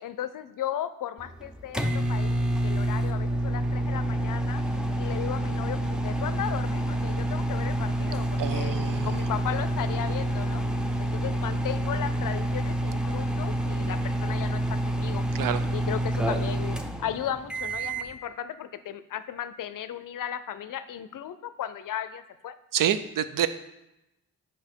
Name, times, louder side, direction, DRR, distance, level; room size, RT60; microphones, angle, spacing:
voice 1, 0.0-4.6 5.0-10.6 11.0-15.2 15.7-22.5, left 10 dB, 55° left, 13 dB, 0.5 m, -36 dB
sound 1, 1.2-18.1, right 1 dB, ahead, 0.7 m, -28 dB
voice 2, 8.4-9.1 15.4-15.6 22.7-23.5, right 10 dB, 60° right, 13 dB, 0.5 m, -27 dB
4.8 x 4.4 x 4.4 m, 0.91 s
hypercardioid pair, 40°, 38 cm